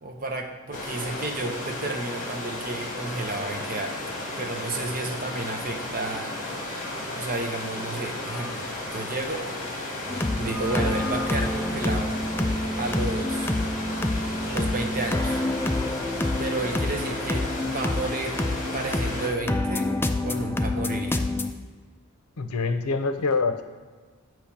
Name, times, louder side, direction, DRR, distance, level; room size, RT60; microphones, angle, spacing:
voice 1, 0.0-4.0 4.4-6.3 7.1-9.4 10.4-12.1 12.8-13.5 14.4-15.4 16.4-18.4 18.7-19.9 20.2-21.2, right 2 dB, 40° right, 3 dB, 0.8 m, -32 dB
sound 1, 0.7-19.3, left 2 dB, 35° left, 1.6 m, -34 dB
sound 2, 6.5-7.2 8.1-9.3 10.3-11.8, left 1 dB, 80° right, 1.3 m, -42 dB
sound 3, 10.1-21.5, left 1 dB, 10° left, 0.3 m, -27 dB
voice 2, 22.4-23.6, left 4 dB, 90° left, 8 dB, 0.6 m, -25 dB
8.4 x 3.1 x 5.9 m, 1.4 s
head